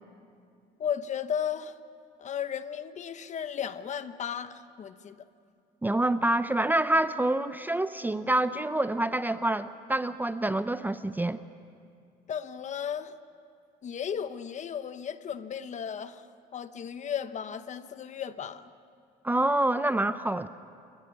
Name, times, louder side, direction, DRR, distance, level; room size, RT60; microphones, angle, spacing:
voice 1, 0.8-1.8 2.2-5.2 12.3-13.1 13.8-16.3 16.5-18.7, left 8 dB, 45° left, 12 dB, 1.0 m, -35 dB
voice 2, 5.8-11.4 19.2-20.5, right 1 dB, 10° right, 12 dB, 0.6 m, -27 dB
28.0 x 15.5 x 9.6 m, 2.4 s
cardioid pair, 110°, 17 cm